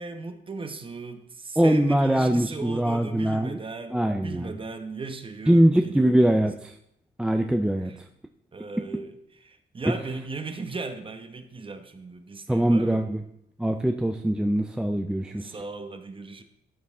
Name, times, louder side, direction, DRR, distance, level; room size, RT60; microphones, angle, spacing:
voice 1, 0.0-6.4 7.8-8.0 8.5-13.0 15.3-16.4, right 4 dB, 25° right, 8 dB, 1.0 m, -37 dB
voice 2, 1.6-3.6 3.9-4.6 5.5-6.7 7.2-7.9 9.9-10.0 12.5-13.2 13.6-15.3, right 1 dB, 5° right, 5 dB, 0.4 m, -22 dB
12.5 x 5.2 x 3.6 m, 0.77 s
cardioid pair, 90°, 20 cm